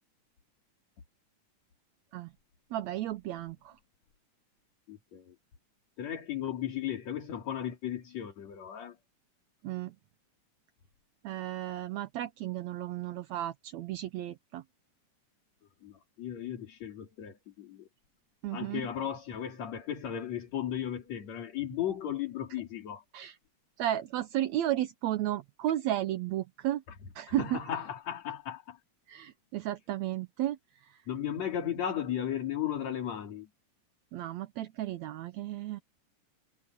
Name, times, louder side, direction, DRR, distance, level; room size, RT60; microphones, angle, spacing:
voice 1, 2.7-3.7 9.6-9.9 11.2-14.6 18.4-18.8 23.1-23.3 23.8-26.8 27.2-27.6 29.1-30.6 34.1-35.8, right 13 dB, 75° right, 2.0 m, -33 dB
voice 2, 4.9-5.4 6.0-9.0 15.8-17.9 18.5-23.0 27.3-28.8 31.1-33.5, left 10 dB, 60° left, 3.7 m, -35 dB
omnidirectional pair, 3.6 m